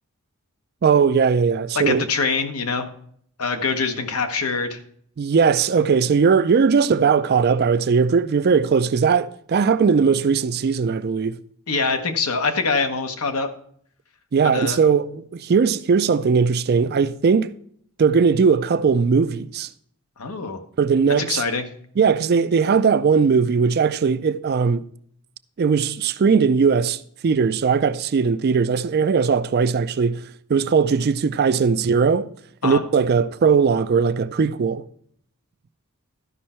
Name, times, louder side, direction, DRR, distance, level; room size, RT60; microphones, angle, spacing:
voice 1, 0.8-2.1 5.2-11.4 14.3-17.5 18.0-19.7 20.8-21.4 22.0-24.9 25.6-30.2 30.5-32.3 32.6-34.8, right 5 dB, 45° right, 0.4 m, -19 dB
voice 2, 1.7-2.9 3.4-4.8 11.7-13.5 14.4-14.8 20.2-20.6 21.1-21.6 32.6-32.8, left 4 dB, 85° left, 1.1 m, -24 dB
12.5 x 5.4 x 4.3 m
head